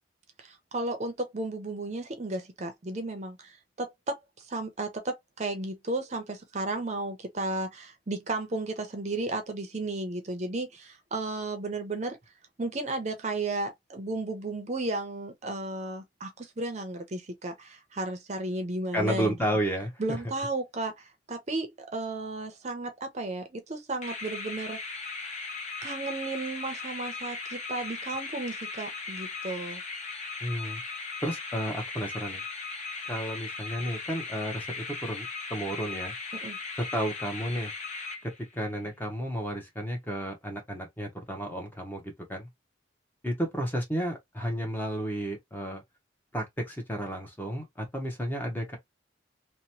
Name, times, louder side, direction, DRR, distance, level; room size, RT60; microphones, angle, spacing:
voice 1, 0.4-12.2 12.6-19.4 20.0-24.8 25.8-29.8 36.4-36.6, right 2 dB, 40° right, 0.6 m, -34 dB
voice 2, 18.9-19.9 30.4-30.8 31.2-32.4 33.1-36.1 36.9-37.7 38.2-42.5 43.2-45.8 46.3-48.8, equal, 10° left, 0.7 m, -32 dB
sound 1, 24.0-38.7, left 4 dB, 40° left, 0.7 m, -38 dB
2.9 x 2.1 x 2.8 m
head